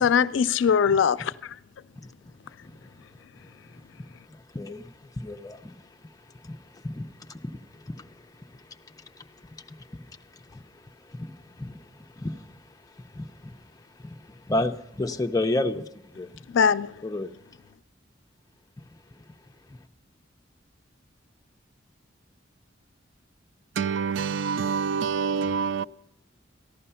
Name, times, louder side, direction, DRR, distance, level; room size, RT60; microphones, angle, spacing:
voice 1, 0.0-1.6 16.5-17.0, left 7 dB, 90° left, 0.4 m, -22 dB
voice 2, 3.3-3.7 4.3-5.8 6.4-12.6 13.0-13.6 13.9-16.4 17.0-17.3, left 2 dB, 20° left, 0.6 m, -34 dB
voice 3, 23.8-25.8, right 6 dB, 85° right, 0.4 m, -26 dB
14.0 x 11.0 x 5.6 m
head